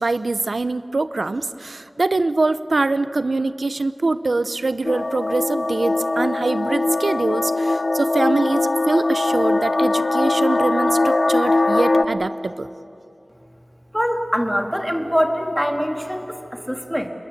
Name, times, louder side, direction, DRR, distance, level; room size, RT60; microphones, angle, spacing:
voice 1, 0.0-12.7, right 3 dB, 85° right, 13 dB, 0.7 m, -23 dB
sound 1, 4.8-12.0, left 2 dB, 70° left, 0.9 m, -21 dB
voice 2, 13.9-17.1, equal, ahead, 4 dB, 2.1 m, -23 dB
27.0 x 21.0 x 8.3 m, 2.8 s
wide cardioid pair, 60°, 0 cm